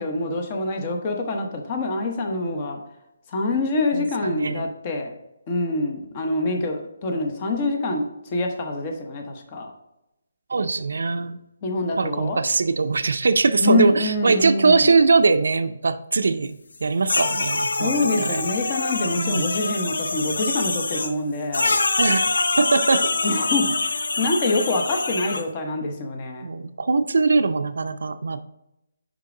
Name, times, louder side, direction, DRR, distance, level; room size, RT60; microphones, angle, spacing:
voice 1, 0.0-2.8 3.3-5.1 5.5-9.7 11.6-12.4 13.6-15.0 17.8-21.7 23.2-26.5, left 2 dB, 25° left, 3 dB, 1.0 m, -25 dB
voice 2, 3.9-4.7 10.5-11.4 12.0-16.5 16.8-18.4 19.2-19.5 22.0-22.3 22.6-23.1 26.4-28.4, right 4 dB, 75° right, 11 dB, 0.5 m, -21 dB
sound 1, 17.1-21.1 21.5-25.4, left 3 dB, 75° left, 0.6 m, -25 dB
6.5 x 5.1 x 3.8 m, 0.89 s
hypercardioid pair, 165°, 0 cm